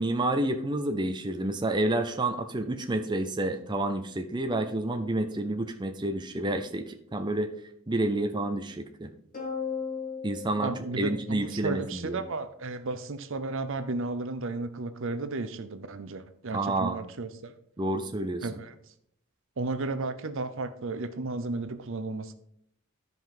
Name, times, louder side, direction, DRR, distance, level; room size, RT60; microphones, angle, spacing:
voice 1, 0.0-7.5 7.9-9.1 10.2-12.2 16.5-17.0 17.8-18.5, right 1 dB, 20° right, 6 dB, 0.5 m, -29 dB
sound 1, 9.3-11.9, left 6 dB, 40° left, 2.5 m, -37 dB
voice 2, 10.6-17.5 18.4-18.7 19.6-22.3, right 3 dB, 60° right, 11 dB, 0.7 m, -33 dB
13.0 x 5.3 x 3.8 m, 0.70 s
head